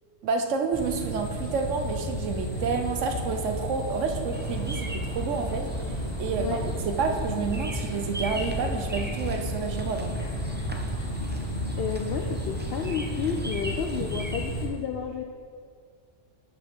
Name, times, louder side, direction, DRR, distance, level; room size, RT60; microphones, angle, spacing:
voice 1, 0.2-10.3, right 5 dB, 75° right, 5 dB, 1.1 m, -29 dB
sound 1, 0.7-14.7, equal, 20° left, 1.4 m, -33 dB
Bird vocalization bird call bird song, 4.3-14.4, equal, 15° right, 0.4 m, -40 dB
sound 2, 5.2-11.5, equal, 40° left, 1.0 m, -41 dB
voice 2, 11.4-15.2, left 6 dB, 60° left, 3 dB, 0.7 m, -31 dB
11.0 x 6.0 x 3.6 m, 2.1 s
omnidirectional pair, 1.3 m